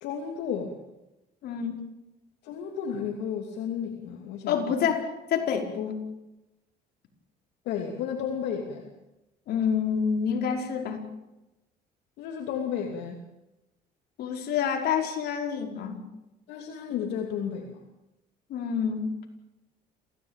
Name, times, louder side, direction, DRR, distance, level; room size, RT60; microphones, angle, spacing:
voice 1, 0.0-0.7 2.4-4.7 7.6-8.9 12.2-13.2 16.5-17.8, left 7 dB, 85° left, 3 dB, 2.9 m, -33 dB
voice 2, 1.4-1.8 4.5-6.0 9.5-11.0 14.2-16.0 18.5-19.1, left 7 dB, 70° left, 3 dB, 5.1 m, -28 dB
27.5 x 17.5 x 9.1 m, 0.98 s
cardioid pair, 110°, 17 cm